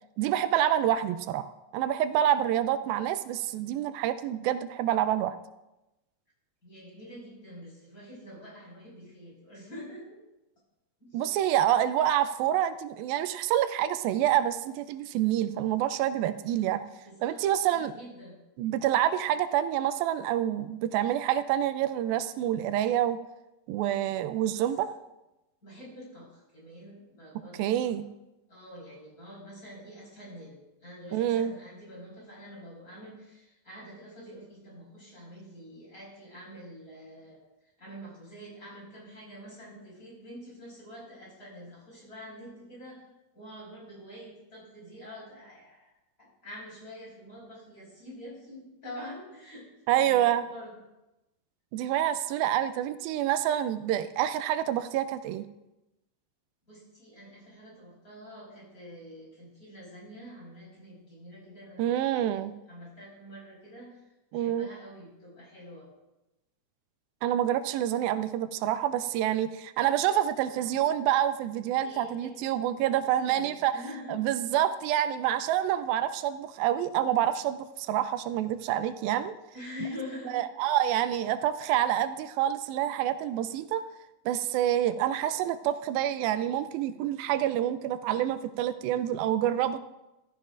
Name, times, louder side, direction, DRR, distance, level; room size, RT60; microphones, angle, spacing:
voice 1, 0.2-5.4 11.1-16.8 17.2-17.9 18.6-23.2 23.7-24.9 27.6-28.0 31.1-31.5 49.9-50.5 51.7-55.5 61.8-62.5 64.3-64.7 67.2-73.7 74.1-79.4 80.3-83.8 84.3-89.8, right 11 dB, 85° right, 12 dB, 2.4 m, -27 dB
voice 2, 6.6-10.2 11.0-11.3 17.0-17.4 17.8-18.3 24.5-24.6 25.6-27.8 28.5-37.4 37.8-43.0 43.3-45.9 46.2-50.7 56.7-62.3 62.7-64.1 64.3-65.9 70.5-70.7 71.8-72.3 72.9-74.1 79.5-80.4, equal, 25° left, -4 dB, 5.3 m, -46 dB
15.0 x 14.5 x 2.5 m, 0.97 s
omnidirectional pair, 4.1 m